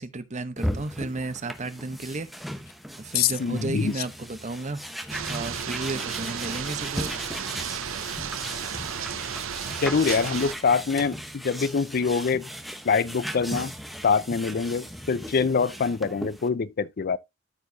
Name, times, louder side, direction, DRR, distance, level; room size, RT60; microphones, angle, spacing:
voice 1, 0.0-2.3 2.9-4.8 5.3-7.1, right 2 dB, 35° right, 0.8 m, -33 dB
sound 1, 0.6-16.5, equal, ahead, 0.9 m, -37 dB
voice 2, 3.1-3.9 9.8-11.1 11.4-12.5 12.9-13.7 14.0-17.2, left 5 dB, 50° left, 0.5 m, -24 dB
sound 2, 5.1-10.5, right 8 dB, 75° right, 0.7 m, -33 dB
13.5 x 4.8 x 2.6 m
head